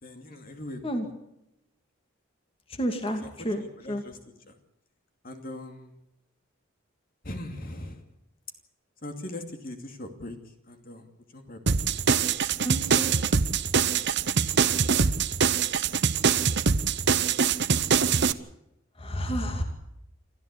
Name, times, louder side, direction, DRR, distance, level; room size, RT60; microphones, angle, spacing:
voice 1, 0.0-1.0 3.2-4.2 4.5-4.6 5.2-5.9 7.2-8.0 9.0-10.4 10.7-11.1 11.3-11.8 13.9-14.0 14.7-14.9, left 1 dB, 45° left, 5 dB, 2.6 m, -40 dB
voice 2, 2.8-3.6 3.9-4.0 12.6-13.1 19.0-19.6, equal, 25° left, 5 dB, 2.4 m, -30 dB
sound 1, 11.7-18.3, right 6 dB, 55° right, 0.9 m, -24 dB
28.0 x 14.0 x 8.4 m, 0.84 s
head